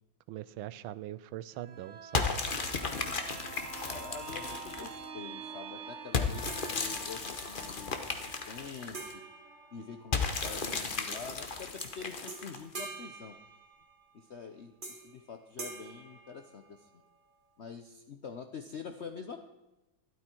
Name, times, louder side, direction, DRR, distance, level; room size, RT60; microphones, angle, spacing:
voice 1, 0.3-2.3, right 13 dB, 90° right, 17 dB, 1.4 m, -42 dB
sound 1, 1.5-11.1 11.5-11.6, right 5 dB, 40° right, 1.4 m, -47 dB
sound 2, 2.1-5.0 6.1-9.1 10.1-12.8, left 4 dB, 35° left, 0.9 m, -34 dB
voice 2, 3.9-9.2 9.7-13.4 14.1-17.0 17.6-19.4, left 5 dB, 70° left, 6 dB, 0.6 m, -46 dB
sound 3, 6.5-7.5 8.9-10.5 11.8-12.0 12.3-14.1 14.8-15.2 15.6-17.0, right 3 dB, 25° right, 1.8 m, -46 dB
12.5 x 12.0 x 4.4 m, 1.0 s
omnidirectional pair, 2.1 m